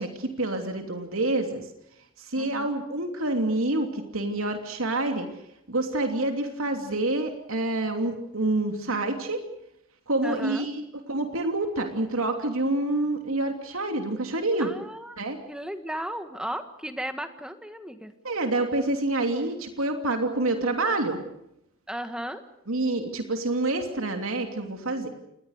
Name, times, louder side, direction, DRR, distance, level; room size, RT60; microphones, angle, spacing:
voice 1, 0.0-1.7 2.2-5.3 5.7-9.4 10.1-14.7 15.2-15.4 18.2-21.2 22.7-25.1, right 2 dB, 85° right, 5 dB, 3.0 m, -27 dB
voice 2, 2.4-2.7 10.2-10.7 14.6-15.2 15.5-18.1 21.9-22.4, equal, 5° right, 8 dB, 1.6 m, -35 dB
28.5 x 20.5 x 6.6 m, 0.79 s
head